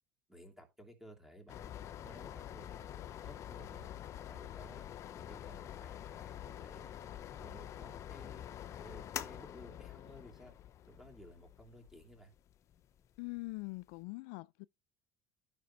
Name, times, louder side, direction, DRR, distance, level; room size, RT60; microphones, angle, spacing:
voice 1, 0.3-1.7 2.0-3.9 4.3-4.9 5.1-6.9 7.3-8.5 8.8-10.5 10.8-12.3, equal, 5° right, 2.8 m, -56 dB
sound 1, 1.5-13.9, left 11 dB, 35° left, 0.7 m, -47 dB
voice 2, 13.2-14.7, left 25 dB, 75° left, 0.4 m, -43 dB
13.0 x 5.9 x 3.9 m
cardioid pair, 170°, 9 cm